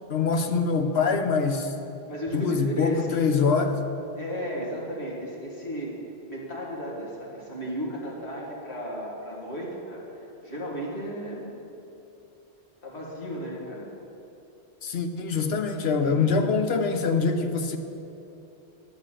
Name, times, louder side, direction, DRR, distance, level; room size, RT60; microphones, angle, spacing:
voice 1, 0.1-1.7 2.3-3.8 14.8-17.8, left 4 dB, 75° left, 7 dB, 1.1 m, -24 dB
voice 2, 2.1-3.3 4.1-6.0 6.3-11.6 12.8-13.9 16.0-16.3, equal, 90° left, -4 dB, 2.5 m, -34 dB
9.9 x 7.8 x 7.5 m, 2.9 s
omnidirectional pair, 1.1 m